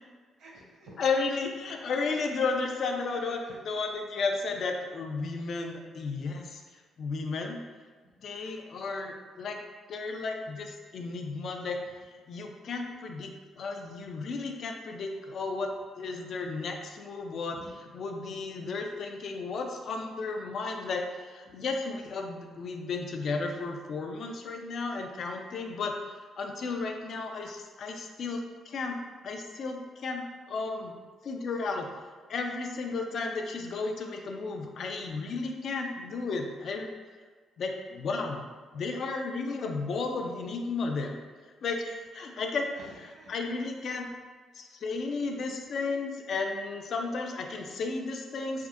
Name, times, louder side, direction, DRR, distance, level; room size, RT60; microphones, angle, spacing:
voice 1, 0.4-0.9 3.2-3.8 8.0-8.1 8.4-8.6 11.9-12.0 17.5-17.6 21.5-21.6 42.7-43.5 44.6-44.7, right 1 dB, 70° right, -4 dB, 0.9 m, -52 dB
voice 2, 1.0-3.4 3.6-6.6 7.0-7.6 8.2-9.6 9.9-11.8 12.1-17.6 17.9-26.0 26.4-29.0 29.2-30.9 31.2-31.9 32.3-36.9 37.6-38.4 38.7-41.2 41.6-42.7 43.3-44.1 44.5-48.7, left 4 dB, 60° left, 3 dB, 0.4 m, -33 dB
3.5 x 2.6 x 2.5 m, 1.5 s
cardioid pair, 90°, 0 cm